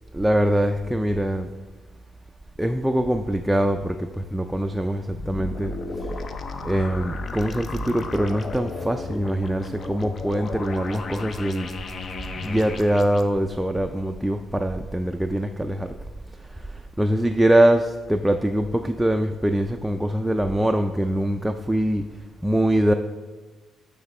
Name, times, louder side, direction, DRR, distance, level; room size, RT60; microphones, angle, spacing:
voice 1, 0.1-1.5 2.6-6.3 6.6-11.7 12.4-15.9 16.4-22.0 22.4-22.9, right 1 dB, 5° right, 5 dB, 0.3 m, -23 dB
sound 1, 5.1-13.2, left 3 dB, 45° left, 0.5 m, -34 dB
8.0 x 3.5 x 4.2 m, 1.3 s
cardioid pair, 90°, 0 cm